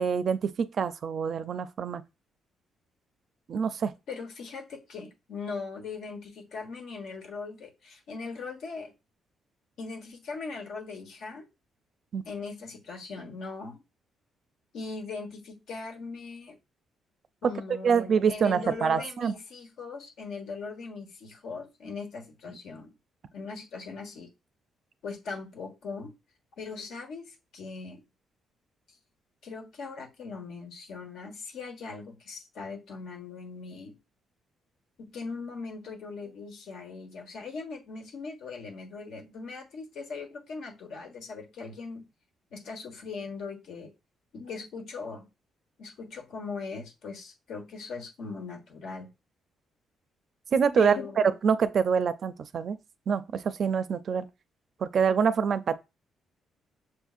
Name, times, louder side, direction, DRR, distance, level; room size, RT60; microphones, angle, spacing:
voice 1, 0.0-2.0 3.5-3.9 12.1-12.3 17.4-17.5 17.8-19.3 50.5-51.0 51.4-52.8 53.1-54.3 54.8-55.8, right 6 dB, 55° right, 0.4 m, -25 dB
voice 2, 4.1-8.9 9.8-11.5 12.2-13.8 14.7-16.6 17.4-22.9 23.3-24.3 25.0-26.1 26.6-28.0 29.4-34.0 35.0-42.1 42.5-43.9 44.3-45.3 45.8-49.1 50.7-51.3, left 4 dB, 75° left, 1.3 m, -40 dB
6.5 x 2.6 x 2.4 m
cardioid pair, 90°, 0 cm